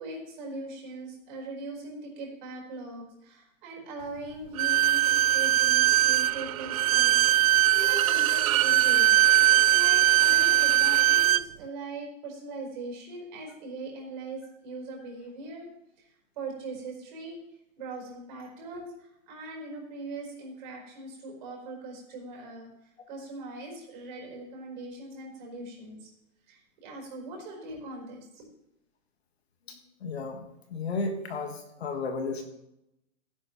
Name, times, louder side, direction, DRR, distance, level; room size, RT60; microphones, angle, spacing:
voice 1, 0.0-7.4 7.7-9.2 9.7-15.7 16.0-16.1 16.4-17.4 17.8-26.1 26.5-28.5, right 2 dB, 35° right, -1 dB, 4.4 m, -40 dB
Bowed string instrument, 4.6-11.5, right 13 dB, 75° right, 0.5 m, -21 dB
voice 2, 29.7-32.4, left 3 dB, 50° left, 5 dB, 1.6 m, -34 dB
16.0 x 11.0 x 3.1 m, 0.85 s
hypercardioid pair, 175°, 42 cm